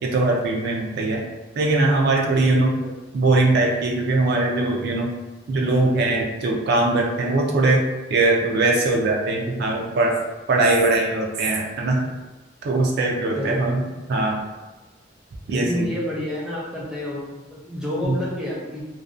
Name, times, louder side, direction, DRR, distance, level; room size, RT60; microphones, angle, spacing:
voice 1, 0.0-1.2 1.6-2.7 3.1-5.1 5.5-7.8 8.1-10.1 10.5-12.0 12.6-13.8 14.1-14.4 15.5-15.9 18.0-18.2, right 2 dB, 55° right, -1 dB, 0.3 m, -21 dB
voice 2, 2.5-2.9 13.3-14.1 15.5-18.9, left 1 dB, 5° right, -7 dB, 0.5 m, -30 dB
2.3 x 2.2 x 2.4 m, 1.1 s
head